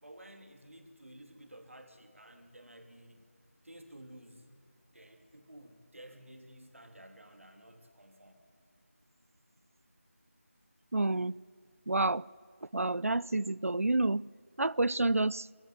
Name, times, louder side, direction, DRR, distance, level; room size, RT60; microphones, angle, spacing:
voice 1, 0.0-3.2 3.6-4.5 4.9-8.4, right 1 dB, 70° right, 2.9 m, -53 dB
voice 2, 10.9-11.3 11.9-12.2 12.7-14.2 14.6-15.4, right 2 dB, 90° right, 0.5 m, -29 dB
22.0 x 14.0 x 9.1 m
figure-of-eight pair, 170°, 7 cm